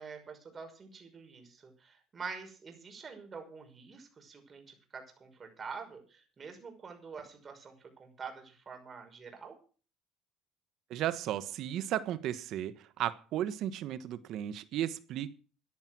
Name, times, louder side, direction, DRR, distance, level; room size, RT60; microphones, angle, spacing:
voice 1, 0.0-9.6, right 5 dB, 35° right, 5 dB, 5.9 m, -46 dB
voice 2, 10.9-15.3, right 11 dB, 65° right, 14 dB, 1.3 m, -34 dB
14.5 x 10.5 x 6.2 m, 0.39 s
supercardioid pair, 90°, 0 cm